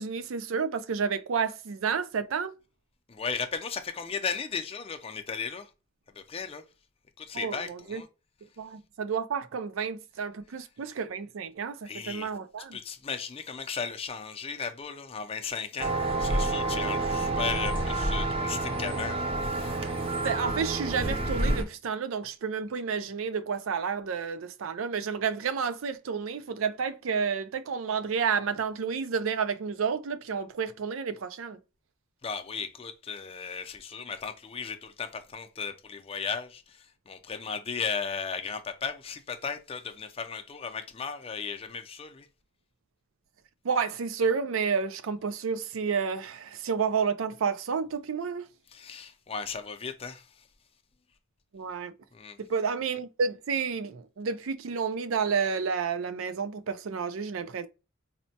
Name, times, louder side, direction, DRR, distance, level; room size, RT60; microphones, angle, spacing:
voice 1, 0.0-2.5 7.3-8.0 8.6-12.8 20.2-31.6 43.6-48.5 51.5-51.9 52.4-57.7, right 6 dB, 90° right, 0.4 m, -30 dB
voice 2, 3.1-5.7 6.2-6.6 7.2-8.1 11.9-12.3 12.7-19.3 32.2-42.3 48.7-50.3 52.1-52.4, left 5 dB, 30° left, 0.4 m, -36 dB
sound 1, 15.8-21.6, right 2 dB, 30° right, 0.5 m, -29 dB
4.1 x 2.1 x 2.7 m
head